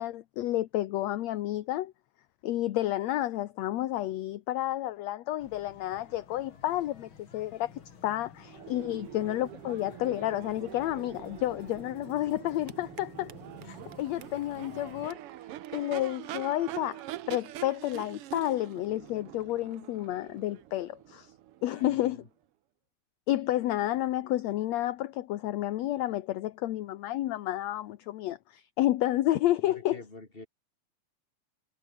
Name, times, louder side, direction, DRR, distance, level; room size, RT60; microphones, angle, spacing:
voice 1, 0.0-1.9 2.4-7.7 8.0-13.3 13.6-15.2 15.7-21.3 21.6-22.2 23.3-30.0, left 14 dB, 65° left, 1.9 m, -30 dB
sound 1, 5.4-15.1, left 6 dB, 40° left, 2.9 m, -52 dB
Crowd / Race car auto racing / Accelerating revving vroom, 8.4-22.2, right 13 dB, 85° right, 1.3 m, -44 dB
voice 2, 21.7-22.3 29.6-30.5, left 2 dB, 15° left, 4.7 m, -47 dB
omnidirectional pair, 3.8 m